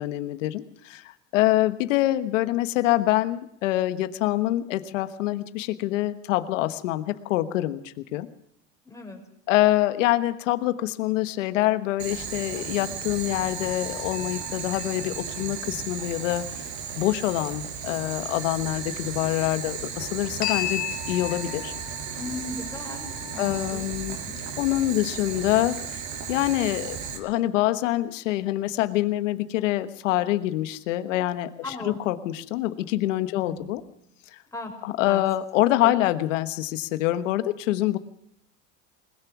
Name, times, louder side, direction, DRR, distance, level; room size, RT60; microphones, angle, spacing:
voice 1, 0.0-8.3 9.5-16.7 17.0-21.7 23.4-24.2 24.6-33.8 34.3-34.4 34.8-38.0, left 15 dB, 90° left, 11 dB, 1.3 m, -25 dB
voice 2, 8.8-9.2 22.1-23.0 23.3-23.9 24.2-24.4 31.6-32.0 33.3-33.7 34.5-34.7 35.1-35.2 35.8-36.0, left 2 dB, 10° left, 2 dB, 6.1 m, -36 dB
Boiling, 12.0-27.2, right 7 dB, 50° right, 5.7 m, -35 dB
sound 1, 13.3-16.2 20.4-24.0, left 11 dB, 25° left, 6.4 m, -36 dB
21.0 x 21.0 x 6.1 m, 0.75 s
supercardioid pair, 120°, 37 cm